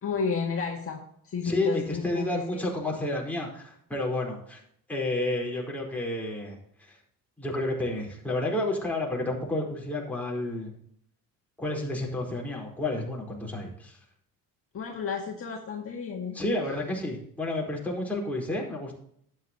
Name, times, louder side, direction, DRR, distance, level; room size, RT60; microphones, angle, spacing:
voice 1, 0.0-2.6 14.7-16.4, left 5 dB, 40° left, -1 dB, 1.9 m, -32 dB
voice 2, 1.4-4.6 4.9-6.6 6.9-7.0 7.4-10.7 11.6-14.0 16.3-18.9, left 2 dB, 5° left, -2 dB, 4.3 m, -30 dB
12.0 x 9.3 x 2.9 m, 0.65 s
cardioid pair, 110°, 35 cm